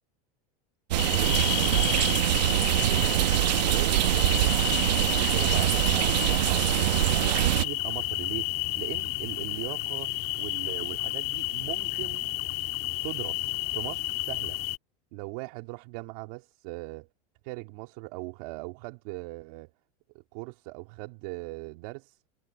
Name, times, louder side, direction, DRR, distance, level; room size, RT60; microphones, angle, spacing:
voice 1, 0.9-2.1 2.5-8.5 8.8-10.1 10.4-12.3 13.0-14.6 15.1-17.1 17.4-19.7 20.1-22.2, right 25 dB, 65° right, 2.8 m, -39 dB
sound 1, 0.9-7.7, right 15 dB, 85° right, 1.0 m, -24 dB
sound 2, 1.0-14.8, left 20 dB, 50° left, 1.8 m, -31 dB
supercardioid pair, 120°, 21 cm